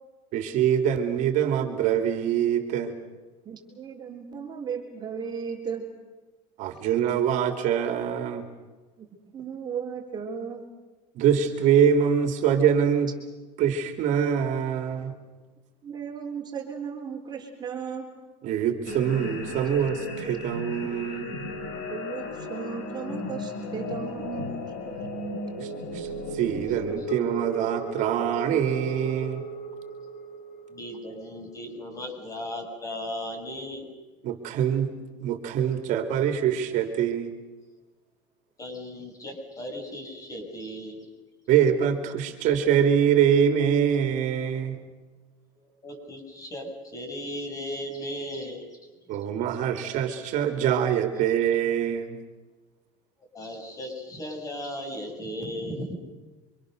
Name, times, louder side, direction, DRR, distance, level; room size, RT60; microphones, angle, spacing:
voice 1, 0.3-2.9 6.6-8.5 11.1-13.1 13.6-15.1 18.4-21.3 25.6-29.4 34.2-34.9 35.2-37.4 41.5-44.8 49.1-52.2, right 8 dB, 50° right, 6 dB, 3.0 m, -24 dB
voice 2, 3.5-5.9 9.0-9.1 9.3-10.6 15.8-18.1 21.9-24.5 24.8-25.0, right 6 dB, 25° right, 1 dB, 3.8 m, -35 dB
sound 1, 18.9-31.6, left 1 dB, 70° left, 5.1 m, -35 dB
voice 3, 30.7-33.9 38.6-41.1 45.5-48.8 53.3-55.9, equal, 20° left, 3 dB, 7.4 m, -36 dB
29.0 x 25.5 x 6.7 m, 1.3 s
cardioid pair, 140°, 16 cm